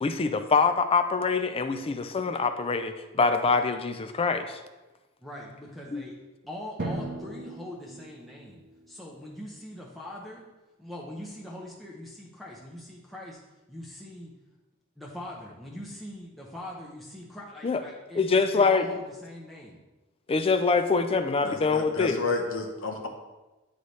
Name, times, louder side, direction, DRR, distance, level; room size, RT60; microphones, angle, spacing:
voice 1, 0.0-4.6 5.9-6.0 17.6-17.8 18.2-18.9 20.3-22.2, left 4 dB, 25° left, 8 dB, 0.4 m, -24 dB
voice 2, 5.2-6.2 6.5-10.5 10.8-13.4 13.7-14.3 15.0-19.8, left 1 dB, ahead, -5 dB, 0.7 m, -42 dB
Drum, 6.8-9.3, right 1 dB, 50° right, 0.7 m, -37 dB
voice 3, 21.4-23.1, left 4 dB, 65° left, 3 dB, 0.9 m, -31 dB
9.6 x 4.0 x 3.2 m, 1.1 s
head